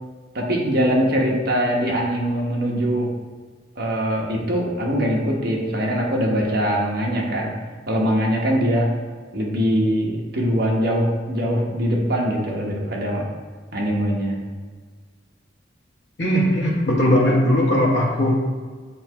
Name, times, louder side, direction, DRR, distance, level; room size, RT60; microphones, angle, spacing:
voice 1, 0.3-3.1 3.8-7.5 7.9-8.9 9.3-13.3 13.7-14.4, equal, 55° right, -2 dB, 1.1 m, -22 dB
voice 2, 16.2-18.3, equal, 70° left, -2 dB, 1.4 m, -18 dB
7.3 x 2.9 x 4.7 m, 1.5 s
head